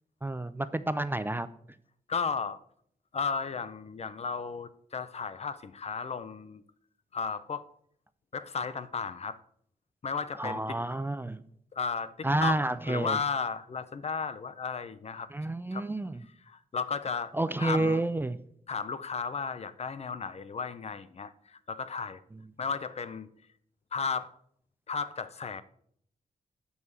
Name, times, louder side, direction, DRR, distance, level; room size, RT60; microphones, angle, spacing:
voice 1, 0.2-1.5 10.4-11.4 12.2-13.2 15.3-16.3 17.3-18.4, right 2 dB, 15° right, 13 dB, 0.3 m, -30 dB
voice 2, 2.1-2.6 3.1-6.6 7.1-7.7 8.3-9.4 10.0-10.8 11.7-15.3 15.7-15.9 16.5-17.3 17.6-18.0 18.7-22.2 22.6-23.3 23.9-24.3 24.9-25.6, left 5 dB, 45° left, 14 dB, 0.5 m, -34 dB
8.1 x 5.5 x 4.6 m, 0.65 s
wide cardioid pair, 90°, 15 cm